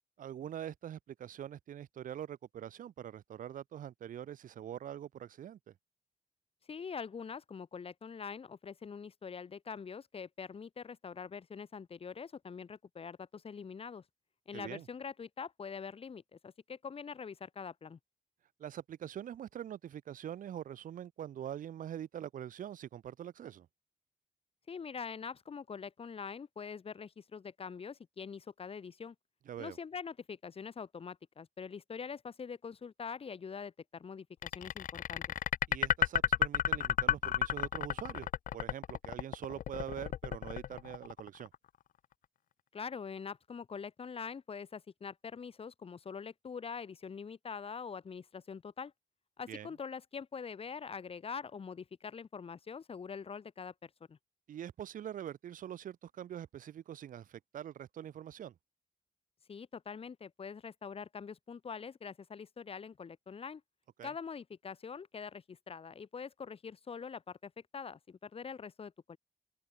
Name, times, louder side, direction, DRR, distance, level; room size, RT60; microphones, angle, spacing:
voice 1, 0.2-5.7 14.5-14.9 18.6-23.7 29.5-29.8 35.7-41.5 49.5-49.7 54.5-58.5 64.0-64.1, right 10 dB, 80° right, 4.3 m, -44 dB
voice 2, 6.7-14.0 14.5-18.0 24.7-29.1 29.6-35.3 42.7-48.9 49.4-54.2 59.5-63.6 64.0-69.2, left 6 dB, 45° left, 7.3 m, -44 dB
sound 1, 34.4-41.5, left 10 dB, 85° left, 2.8 m, -32 dB
open air
cardioid pair, 115°, 14 cm